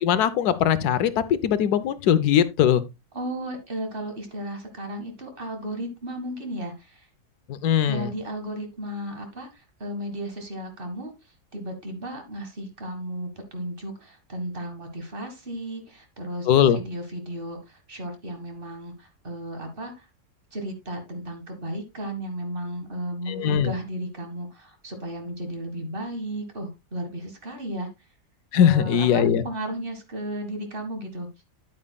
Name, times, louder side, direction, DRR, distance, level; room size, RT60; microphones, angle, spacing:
voice 1, 0.0-2.8 7.5-8.1 16.5-16.8 23.3-23.7 28.5-29.4, left 9 dB, 85° left, 1.2 m, -20 dB
voice 2, 3.1-7.1 7.9-11.1 11.5-16.5 16.7-20.1 20.5-27.9 28.5-31.4, right 1 dB, 35° right, 1.7 m, -34 dB
9.3 x 8.6 x 2.3 m
omnidirectional pair, 1.7 m